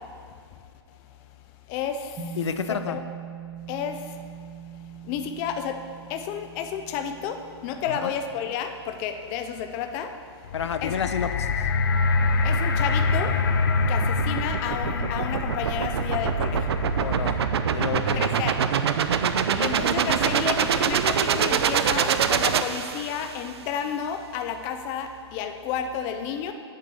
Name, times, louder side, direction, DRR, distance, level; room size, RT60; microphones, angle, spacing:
voice 1, 1.7-2.4 2.7-3.0 3.7-4.2 5.0-5.8 6.1-10.1 10.8-10.9 12.4-13.3 13.9-16.7 18.2-18.6 19.6-26.5, left 8 dB, 15° left, 6 dB, 0.4 m, -31 dB
sound 1, 2.2-10.6, right 9 dB, 15° right, 0.7 m, -43 dB
voice 2, 2.4-3.0 8.0-8.1 10.5-11.6 17.0-17.4 17.7-18.2, left 7 dB, 85° left, 10 dB, 0.8 m, -29 dB
sound 2, 10.4-20.7 21.4-21.5, left 3 dB, 50° left, 0.7 m, -27 dB
sound 3, 13.1-23.4, right 7 dB, 65° right, 0.6 m, -25 dB
8.0 x 7.7 x 7.0 m, 2.2 s
hypercardioid pair, 165°, 14 cm